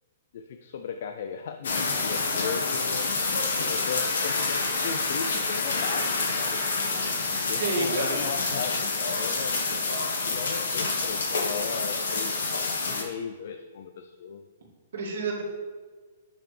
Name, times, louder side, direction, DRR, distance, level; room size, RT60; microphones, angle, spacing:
voice 1, 0.3-3.1 3.7-6.6 7.5-9.7 10.2-14.5, left 6 dB, 50° left, 7 dB, 0.4 m, -36 dB
sound 1, 1.6-13.0, left 3 dB, 90° left, 1.2 m, -28 dB
voice 2, 7.3-8.2 14.9-15.4, right 3 dB, 65° right, -3 dB, 2.0 m, -30 dB
9.2 x 6.2 x 3.3 m, 1.5 s
hypercardioid pair, 175°, 0 cm